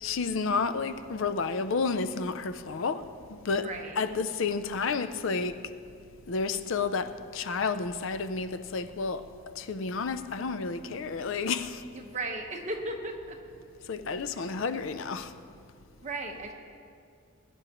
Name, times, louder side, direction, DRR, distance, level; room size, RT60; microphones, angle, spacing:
voice 1, 0.0-3.1 3.4-5.6 6.3-9.3 9.6-11.8 13.9-15.3, left 4 dB, 65° left, 0.5 m, -31 dB
voice 2, 3.6-3.9 11.9-13.3 16.0-16.5, right 2 dB, 35° right, 1.2 m, -35 dB
21.5 x 10.0 x 3.0 m
head